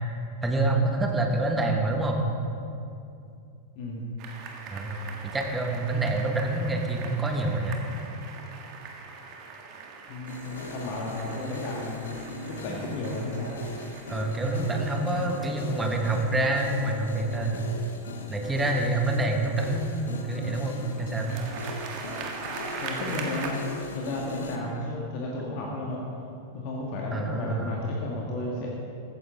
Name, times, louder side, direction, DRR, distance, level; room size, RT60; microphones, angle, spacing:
voice 1, 0.4-2.2 4.7-5.0 5.3-7.8 12.7-12.8 14.1-17.7 18.3-21.3 27.1-27.8, right 2 dB, 10° right, 2 dB, 1.8 m, -27 dB
voice 2, 3.8-4.1 10.1-13.6 22.8-23.5 23.9-26.0 26.5-28.7, left 2 dB, 45° left, -2 dB, 1.8 m, -33 dB
sound 1, 4.2-18.2 20.9-23.5, right 5 dB, 40° right, 1.8 m, -42 dB
sound 2, 10.3-24.6, left 3 dB, 65° left, 1.2 m, -40 dB
15.0 x 14.0 x 3.8 m, 2.6 s
figure-of-eight pair, 90°, 0 cm